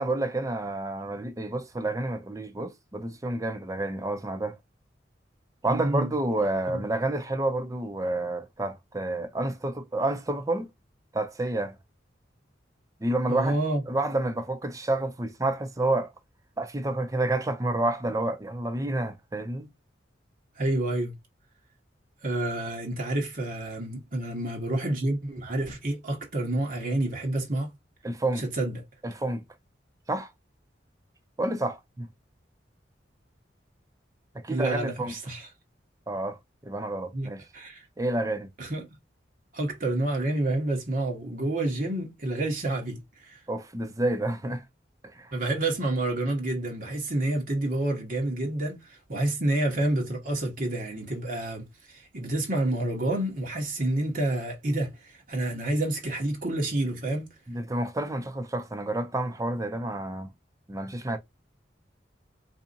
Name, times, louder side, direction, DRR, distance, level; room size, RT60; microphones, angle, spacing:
voice 1, 0.0-4.6 5.6-10.7 11.1-11.8 13.0-13.6 13.9-16.1 16.6-19.7 28.0-28.4 29.0-29.4 30.1-30.3 31.4-32.1 34.4-35.1 36.1-36.4 36.6-37.4 38.0-38.5 43.5-44.6 45.1-45.3 57.5-60.3 60.7-61.2, right 2 dB, 20° right, 0.5 m, -29 dB
voice 2, 5.7-6.1 6.7-6.8 13.3-13.8 20.5-21.1 22.2-27.7 28.4-28.8 34.5-35.5 37.1-37.9 38.6-38.9 39.5-43.4 45.3-57.3, right 1 dB, 50° right, 1.3 m, -29 dB
4.2 x 2.7 x 2.6 m
head